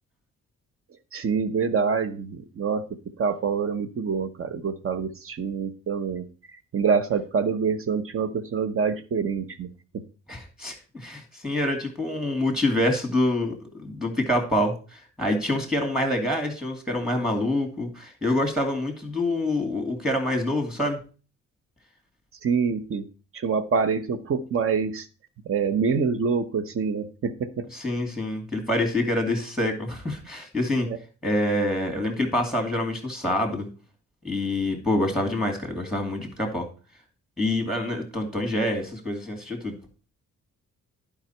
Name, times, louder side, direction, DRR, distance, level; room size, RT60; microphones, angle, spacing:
voice 1, 1.1-2.9 3.2-6.3 6.7-10.0 22.4-23.1 23.3-25.1 25.4-27.7 30.9-31.0, right 5 dB, 45° right, 12 dB, 1.0 m, -26 dB
voice 2, 10.3-21.0 27.7-30.9 31.2-33.7 34.2-36.7 37.4-39.8, left 1 dB, ahead, 4 dB, 2.6 m, -26 dB
10.5 x 5.0 x 4.5 m, 0.36 s
cardioid pair, 90°, 30 cm